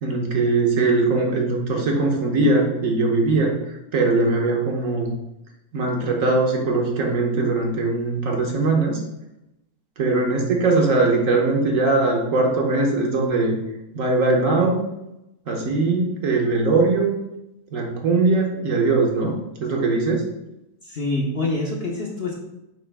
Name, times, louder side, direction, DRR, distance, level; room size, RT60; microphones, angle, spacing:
voice 1, 0.0-5.1 5.7-9.0 10.0-13.6 13.9-14.8 15.5-17.1 17.7-20.3, right 3 dB, 55° right, 1 dB, 1.2 m, -21 dB
voice 2, 20.8-22.3, left 2 dB, 45° left, -2 dB, 0.9 m, -26 dB
8.7 x 3.3 x 3.4 m, 0.89 s
omnidirectional pair, 1.8 m